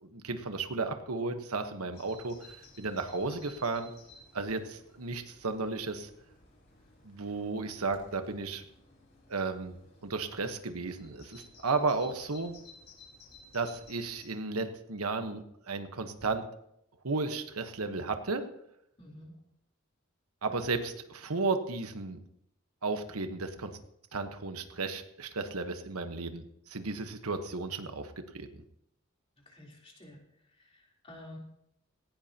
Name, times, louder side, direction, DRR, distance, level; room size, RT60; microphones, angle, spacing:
voice 1, 0.0-3.9 4.3-6.1 7.0-8.6 9.3-9.7 10.0-12.6 13.5-15.4 15.7-16.4 17.0-18.4 20.4-22.2 22.8-23.7 24.1-28.5, right 3 dB, 85° right, 7 dB, 1.3 m, -34 dB
Bird vocalization bird call bird song, 1.9-14.3, left 2 dB, 45° left, 4.7 m, -56 dB
voice 2, 19.0-19.3 29.5-30.2 30.5-31.4, left 1 dB, 25° left, -2 dB, 3.6 m, -50 dB
18.0 x 16.5 x 2.9 m, 0.78 s
head